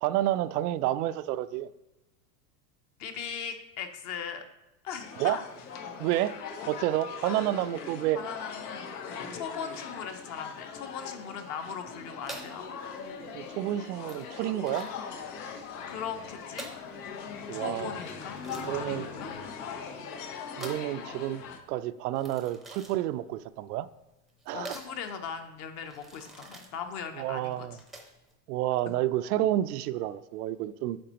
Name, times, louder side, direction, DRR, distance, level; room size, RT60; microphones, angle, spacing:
voice 1, 0.0-1.7 5.2-5.4 6.0-6.4 6.7-8.2 13.3-14.9 17.5-17.9 18.7-19.1 20.6-21.4 21.7-23.9 24.5-24.8 27.2-27.8 28.5-31.0, right 14 dB, 85° right, 13 dB, 0.5 m, -29 dB
voice 2, 3.0-4.4 4.8-5.4 7.2-7.6 8.1-8.9 9.3-12.8 15.9-16.7 17.5-19.3 24.5-27.8, left 7 dB, 40° left, 7 dB, 0.8 m, -39 dB
sound 1, 5.0-21.6, left 6 dB, 90° left, 1.2 m, -40 dB
sound 2, 12.3-28.3, right 2 dB, ahead, 0.6 m, -48 dB
8.7 x 6.0 x 2.9 m, 0.98 s
supercardioid pair, 155°, 45 cm